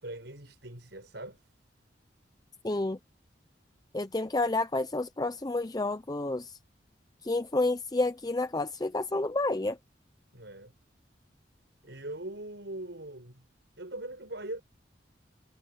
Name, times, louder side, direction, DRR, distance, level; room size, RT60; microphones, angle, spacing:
voice 1, 0.0-1.5 10.3-10.7 11.8-13.5 13.8-14.6, right 1 dB, 70° right, 5.5 m, -41 dB
voice 2, 2.6-3.0 3.9-6.6 7.2-9.8, left 2 dB, 20° left, 0.6 m, -30 dB
head